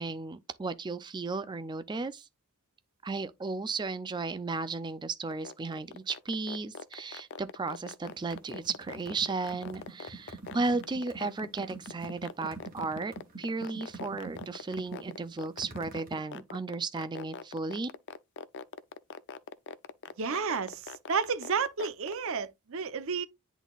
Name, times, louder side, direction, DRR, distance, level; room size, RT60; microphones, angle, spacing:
voice 1, 0.0-2.3 3.0-17.9, right 3 dB, 20° right, 0.4 m, -34 dB
sound 1, 5.3-22.3, left 6 dB, 55° left, 0.5 m, -41 dB
sound 2, 8.1-16.2, right 3 dB, 40° right, 2.2 m, -45 dB
voice 2, 20.2-23.3, right 5 dB, 65° right, 0.7 m, -31 dB
10.0 x 4.0 x 2.3 m
head